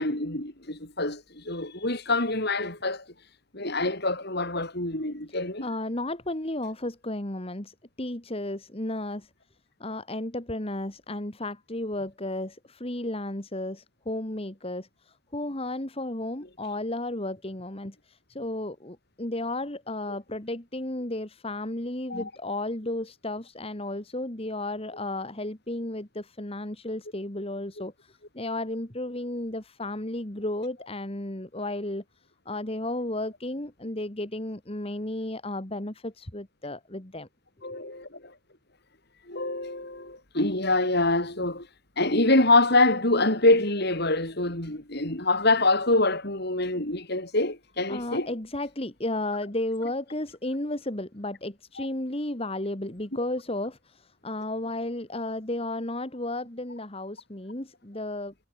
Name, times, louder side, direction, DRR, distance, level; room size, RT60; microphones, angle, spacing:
voice 1, 0.0-3.0 3.5-5.6 22.1-22.3 37.6-38.2 39.3-41.7 42.0-48.3 51.8-51.9, left 2 dB, 50° left, 5.0 m, -25 dB
voice 2, 5.6-9.3 9.8-32.0 32.5-37.3 47.9-58.3, left 1 dB, 25° left, 1.9 m, -33 dB
head